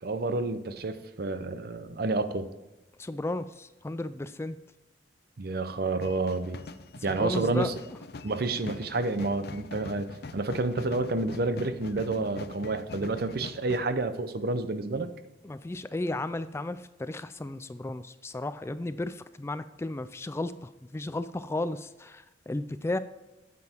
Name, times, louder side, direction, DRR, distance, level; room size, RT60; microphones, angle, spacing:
voice 1, 0.0-2.5 5.4-6.6 7.0-7.7 8.2-15.1, right 3 dB, 60° right, 11 dB, 0.7 m, -29 dB
voice 2, 3.0-4.6 7.2-7.7 15.4-23.0, left 2 dB, 15° left, 13 dB, 0.3 m, -34 dB
sound 1, 6.0-13.9, left 3 dB, 65° left, 0.6 m, -43 dB
9.4 x 7.6 x 4.4 m, 1.0 s
head